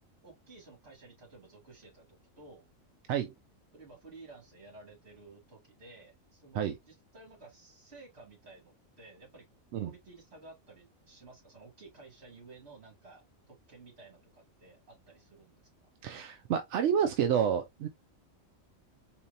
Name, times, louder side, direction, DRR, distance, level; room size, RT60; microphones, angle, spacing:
voice 1, 0.2-2.7 3.7-9.5 9.8-15.7, right 3 dB, 50° right, 2.2 m, -54 dB
voice 2, 16.0-17.9, right 8 dB, 65° right, 0.8 m, -29 dB
4.3 x 2.9 x 2.5 m
omnidirectional pair, 1.4 m